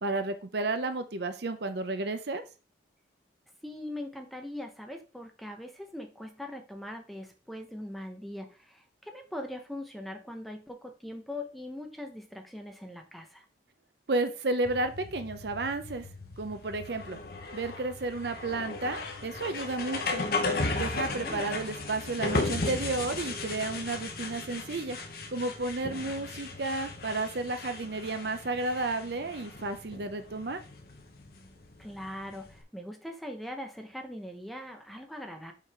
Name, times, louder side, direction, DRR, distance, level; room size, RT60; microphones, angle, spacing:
voice 1, 0.0-2.4 14.1-16.1 16.4-17.2 17.5-20.2 20.8-25.0 25.3-30.6, right 2 dB, 60° right, 9 dB, 0.6 m, -32 dB
voice 2, 3.6-13.4 20.8-21.4 31.8-35.5, left 1 dB, ahead, 4 dB, 0.7 m, -41 dB
sound 1, 14.6-32.6, left 3 dB, 50° left, 1.0 m, -36 dB
5.6 x 3.9 x 4.7 m, 0.34 s
head